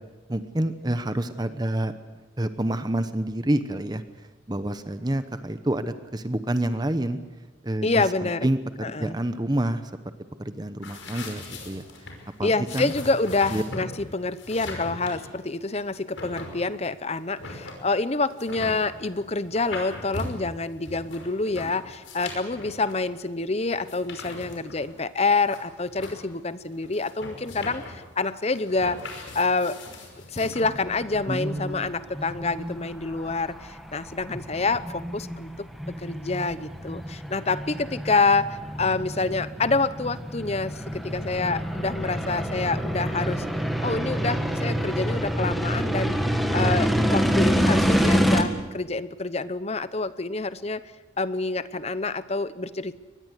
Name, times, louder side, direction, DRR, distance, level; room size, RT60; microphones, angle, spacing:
voice 1, 0.3-1.9 2.4-4.0 4.5-7.2 7.6-8.6 9.0-9.8 10.4-11.8 12.4-12.9 13.5-13.6 31.3-31.9, right 1 dB, 20° right, 11 dB, 0.9 m, -28 dB
voice 2, 7.8-8.5 8.8-9.2 12.4-29.8 30.3-35.7 36.0-43.4 43.8-46.2 46.5-50.8 51.2-53.0, left 3 dB, 30° left, 15 dB, 0.8 m, -27 dB
sound 1, 10.8-30.6, left 2 dB, 75° left, 5.5 m, -40 dB
sound 2, 30.6-48.4, equal, ahead, 1.7 m, -27 dB
23.5 x 20.0 x 8.3 m, 1.2 s
head